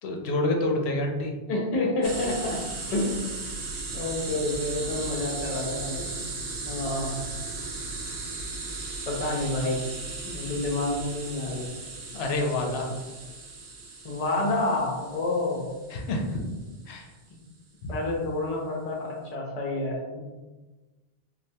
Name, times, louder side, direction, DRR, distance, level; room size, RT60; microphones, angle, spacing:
voice 1, 0.0-1.3 12.1-12.9 15.9-16.4 16.9-17.1 17.8-17.9, left 2 dB, 85° left, 1 dB, 0.8 m, -28 dB
voice 2, 1.5-2.6 2.9-3.3 3.9-6.0 6.7-7.2 9.1-9.8 10.2-11.6 14.0-15.7 17.9-20.2, left 2 dB, 45° left, -1 dB, 0.7 m, -28 dB
sound 1, 2.0-16.6, right 3 dB, 75° right, 0.8 m, -36 dB
3.2 x 2.5 x 2.7 m, 1.2 s
omnidirectional pair, 1.0 m